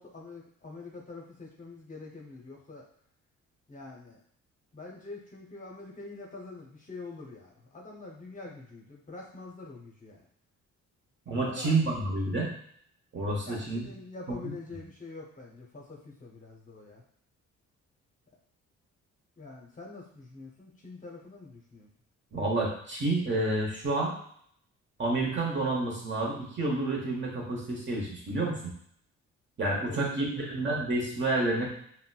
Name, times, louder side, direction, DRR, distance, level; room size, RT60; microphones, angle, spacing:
voice 1, 0.0-2.8 3.7-4.2 4.7-10.3 11.5-11.7 13.4-17.0 19.4-21.9 29.8-30.7, left 3 dB, 25° left, -2 dB, 0.7 m, -45 dB
voice 2, 11.3-12.5 13.1-13.9 14.3-14.4 22.3-24.1 25.0-28.7 29.6-31.7, right 2 dB, 40° right, -2 dB, 1.1 m, -29 dB
3.9 x 2.1 x 2.3 m, 0.66 s
cardioid pair, 90°, 30 cm